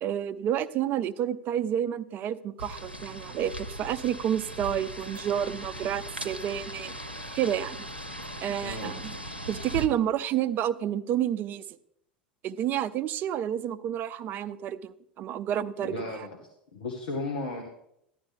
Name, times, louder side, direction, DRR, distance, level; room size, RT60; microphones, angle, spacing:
voice 1, 0.0-6.9 7.3-7.9 8.4-9.1 9.5-11.6 12.4-16.1, right 10 dB, 40° right, 15 dB, 0.6 m, -30 dB
sound 1, 2.6-9.9, equal, 90° right, 0.8 m, -39 dB
voice 2, 8.6-9.0 15.8-17.6, left 2 dB, 65° left, 2 dB, 1.6 m, -35 dB
14.0 x 11.0 x 3.5 m, 0.77 s
figure-of-eight pair, 80°, 5 cm